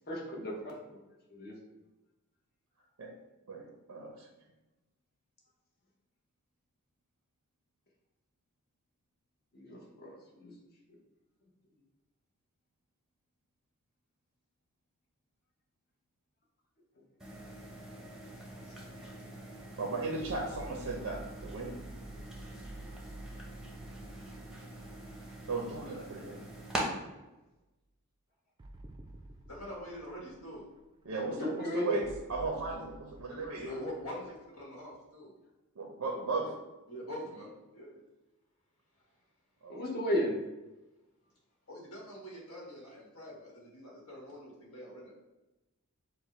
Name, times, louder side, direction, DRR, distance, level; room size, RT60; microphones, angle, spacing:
voice 1, 0.1-1.0 1.3-1.5 9.5-10.5 10.9-11.0 18.6-18.8 23.4-23.5 31.3-32.0 39.7-40.4, equal, 45° left, -2 dB, 1.0 m, -35 dB
voice 2, 3.5-4.3 19.8-21.9 25.5-26.4 31.0-33.7 35.8-36.6 39.6-39.9, right 3 dB, 85° right, 0 dB, 0.6 m, -36 dB
sound 1, 17.2-26.8, right 1 dB, 5° right, 0.7 m, -44 dB
sound 2, 20.2-26.5 26.9-27.0 28.6-31.1 32.0-34.8, right 1 dB, 20° right, 0.3 m, -50 dB
voice 3, 29.5-30.6 33.5-35.3 36.9-38.0 41.7-45.2, equal, 75° left, -3 dB, 1.4 m, -44 dB
4.6 x 2.1 x 4.2 m, 1.0 s
head